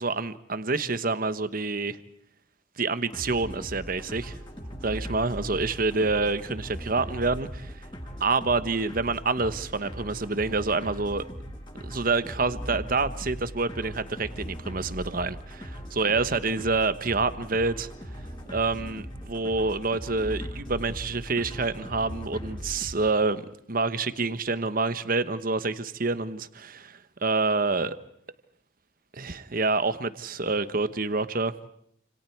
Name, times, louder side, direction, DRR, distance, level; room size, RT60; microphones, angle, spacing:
voice 1, 0.0-2.0 2.8-4.4 4.8-7.8 8.2-11.2 11.8-17.9 18.5-28.0 29.1-31.5, right 3 dB, 45° right, 1.2 m, -27 dB
sound 1, 3.1-22.9, equal, 25° left, 7.4 m, -39 dB
29.5 x 27.5 x 4.6 m
head